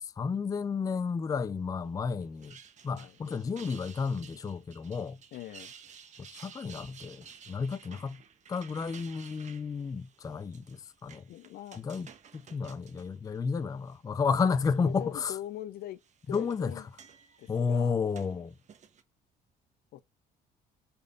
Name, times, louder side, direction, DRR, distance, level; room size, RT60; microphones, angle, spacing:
voice 1, 0.0-2.6 2.8-5.2 6.3-8.2 8.5-11.2 11.8-12.1 12.3-15.3 16.3-16.7 17.5-18.5, left 5 dB, 20° left, 0.4 m, -32 dB
sound 1, 2.2-14.0 14.4-15.0 15.8-19.0, right 7 dB, 45° right, 1.2 m, -54 dB
voice 2, 5.3-5.7 11.3-11.8 14.8-16.0 16.3-16.9 17.4-18.0 19.9-20.0, left 12 dB, 65° left, 0.6 m, -42 dB
5.0 x 4.2 x 5.0 m
cardioid pair, 110°, 17 cm